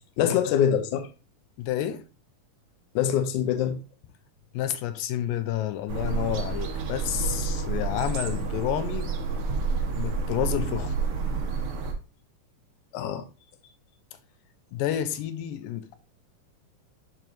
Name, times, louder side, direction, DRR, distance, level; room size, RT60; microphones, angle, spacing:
voice 1, 0.2-1.1 3.0-3.8 12.9-13.2, left 9 dB, 70° left, 2.2 m, -24 dB
voice 2, 1.6-2.0 4.5-9.1 10.0-10.9 14.7-15.9, left 11 dB, 85° left, 2.4 m, -30 dB
sound 1, 5.9-11.9, right 4 dB, 60° right, 1.6 m, -29 dB
10.5 x 4.7 x 2.6 m
omnidirectional pair, 3.9 m